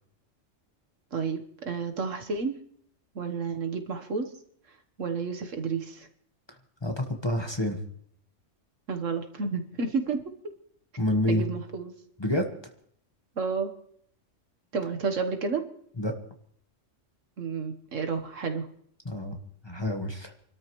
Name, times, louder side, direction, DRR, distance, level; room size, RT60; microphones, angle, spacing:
voice 1, 1.1-2.5 3.1-4.3 5.0-6.1 8.9-10.2 11.3-11.9 13.4-13.7 14.7-15.6 17.4-18.7, right 5 dB, 75° right, 5 dB, 1.6 m, -31 dB
voice 2, 6.8-7.8 11.0-11.4 12.2-12.5 16.0-16.1 19.0-19.4 19.6-20.3, left 1 dB, 20° left, 4 dB, 1.3 m, -28 dB
28.0 x 13.0 x 3.1 m, 0.64 s
omnidirectional pair, 1.3 m